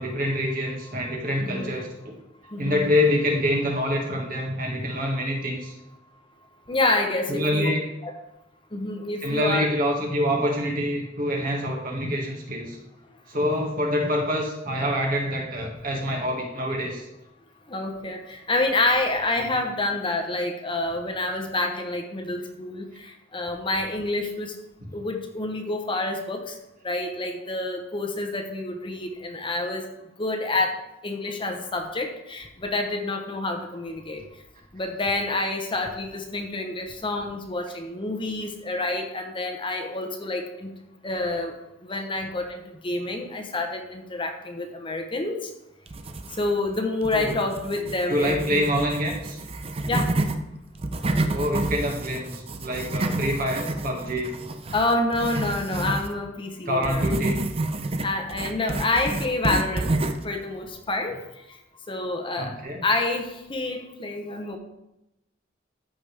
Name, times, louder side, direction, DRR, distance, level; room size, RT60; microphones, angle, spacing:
voice 1, 0.0-2.2 2.6-5.7 7.3-7.8 9.2-12.8 13.3-17.0 24.8-24.9 47.1-47.3 48.1-49.4 51.3-54.3 56.7-57.5 62.4-62.8, equal, 50° right, 0 dB, 1.9 m, -26 dB
voice 2, 1.4-1.7 2.5-2.8 6.7-7.7 8.0-8.1 8.7-9.7 17.7-22.8 23.3-24.5 24.9-26.5 26.8-29.9 30.2-34.2 34.7-40.7 41.0-41.5 41.8-45.5 46.4-48.6 49.9-50.1 54.7-57.0 58.0-59.9 60.2-61.2 61.9-62.5 62.8-64.6, left 2 dB, 25° left, 4 dB, 0.9 m, -28 dB
sound 1, 45.9-46.7 47.0-50.4 50.7-56.1 56.8-60.3, right 2 dB, 30° right, 0.6 m, -29 dB
13.5 x 5.2 x 3.4 m, 0.90 s
head